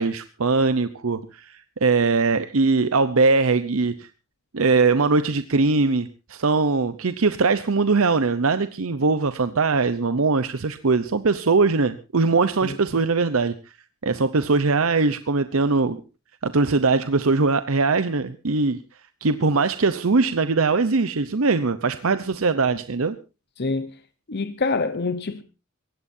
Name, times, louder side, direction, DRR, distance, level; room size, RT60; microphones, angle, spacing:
voice 1, 0.0-4.1 4.5-13.5 14.0-16.0 16.4-18.8 19.2-23.2, right 4 dB, 75° right, 0.8 m, -21 dB
voice 2, 24.3-25.4, left 3 dB, 50° left, 0.9 m, -25 dB
23.0 x 17.0 x 2.7 m
head